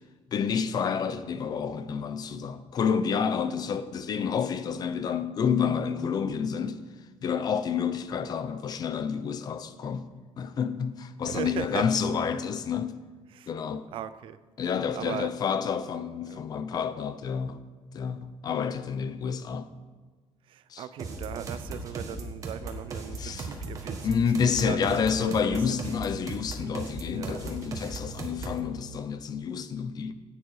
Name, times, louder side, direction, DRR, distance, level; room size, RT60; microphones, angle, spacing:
voice 1, 0.3-6.8 7.2-10.1 10.4-12.9 13.5-13.8 14.6-17.6 17.9-19.7 20.7-20.8 23.2-23.5 24.0-30.1, left 6 dB, 40° left, 0.6 m, -29 dB
voice 2, 11.2-11.9 13.3-13.5 13.9-14.4 14.9-15.3 16.3-16.4 20.4-24.2 24.4-24.9 25.5-26.1 27.1-27.4, right 10 dB, 55° right, 0.5 m, -38 dB
sound 1, 21.0-28.7, right 3 dB, 30° right, 1.6 m, -37 dB
14.5 x 9.3 x 4.8 m
cardioid pair, 175°, 11 cm